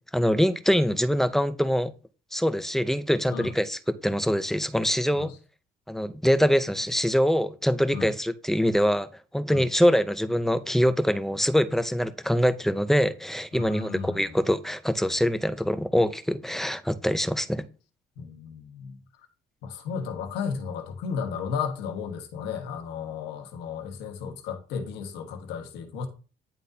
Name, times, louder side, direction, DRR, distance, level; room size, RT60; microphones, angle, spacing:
voice 1, 0.1-1.9 2.3-5.3 5.9-9.1 9.3-17.6, equal, ahead, 0.5 m, -24 dB
voice 2, 13.5-14.4 18.2-19.0 19.6-26.1, left 6 dB, 85° left, 1.2 m, -34 dB
10.0 x 3.8 x 2.7 m
cardioid pair, 110°, 17 cm